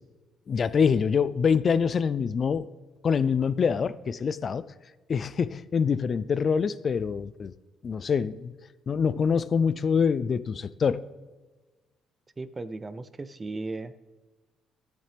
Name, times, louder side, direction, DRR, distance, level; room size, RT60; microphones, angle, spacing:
voice 1, 0.5-2.6 3.0-4.6 5.1-7.5 7.8-8.5 8.9-11.0, left 6 dB, 45° left, 16 dB, 0.3 m, -25 dB
voice 2, 12.4-13.9, right 3 dB, 25° right, 12 dB, 0.5 m, -36 dB
11.5 x 7.6 x 3.4 m, 1.2 s
cardioid pair, 85°, 0 cm